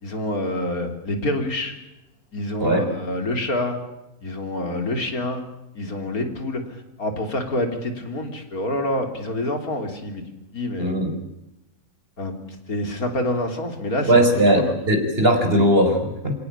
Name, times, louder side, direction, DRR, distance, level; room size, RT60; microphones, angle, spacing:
voice 1, 0.0-1.7 2.3-3.8 4.2-5.5 5.8-10.2 10.5-10.9 12.2-12.4 12.7-14.7, left 1 dB, 90° left, 6 dB, 3.9 m, -27 dB
voice 2, 10.8-11.1 14.1-16.4, right 1 dB, 40° right, 5 dB, 5.1 m, -19 dB
28.5 x 17.5 x 8.7 m, 0.92 s
omnidirectional pair, 1.5 m